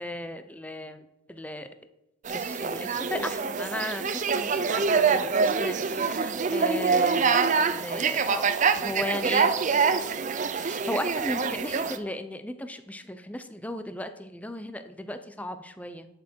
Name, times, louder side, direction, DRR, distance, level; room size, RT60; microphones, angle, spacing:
voice 1, 0.0-1.7 2.3-16.1, left 1 dB, 5° left, 9 dB, 0.6 m, -36 dB
sound 1, 2.3-12.0, right 5 dB, 40° right, 0.5 m, -25 dB
11.0 x 6.3 x 4.5 m, 0.92 s
head